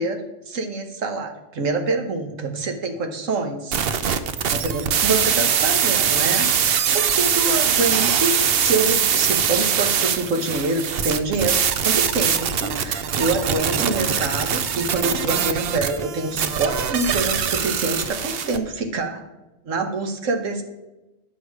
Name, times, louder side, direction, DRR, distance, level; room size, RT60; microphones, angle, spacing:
voice 1, 0.0-3.8 4.5-19.2 19.6-20.6, right 3 dB, 90° right, 5 dB, 1.5 m, -26 dB
sound 1, 3.7-18.6, right 8 dB, 60° right, 0.8 m, -22 dB
9.9 x 6.3 x 4.7 m, 1.0 s
omnidirectional pair, 1.3 m